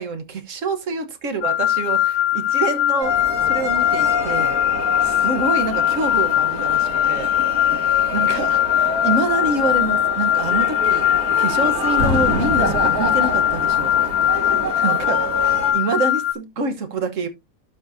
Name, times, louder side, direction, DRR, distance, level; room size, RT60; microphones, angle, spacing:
voice 1, 0.0-2.2 2.5-3.1 3.4-4.6 5.0-7.3 8.1-14.1 14.7-17.3, right 3 dB, 60° right, 1.6 m, -26 dB
sound 1, 1.4-16.3, left 13 dB, 80° left, 1.1 m, -20 dB
sound 2, 3.0-15.7, right 1 dB, 85° right, 3.4 m, -27 dB
12.0 x 5.2 x 2.7 m
omnidirectional pair, 1.5 m